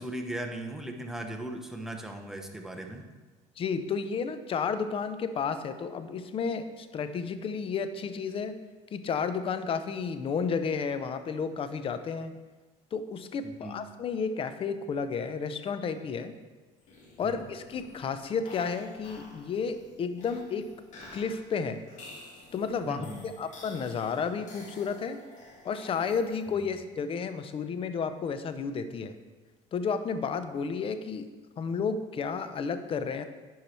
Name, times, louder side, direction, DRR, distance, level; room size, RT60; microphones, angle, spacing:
voice 1, 0.0-3.0 13.4-13.8 17.2-17.4 22.8-23.2 26.5-26.8, right 1 dB, 5° right, 2 dB, 0.9 m, -38 dB
voice 2, 3.6-8.6 8.9-12.4 12.9-16.3 17.2-20.7 21.1-21.8 22.5-25.2 25.6-29.2 29.7-31.3 31.6-33.2, left 5 dB, 40° left, 10 dB, 0.7 m, -32 dB
sound 1, 16.8-26.7, left 2 dB, 55° left, 2.3 m, -51 dB
10.5 x 4.7 x 4.4 m, 1.3 s
cardioid pair, 110°, 15 cm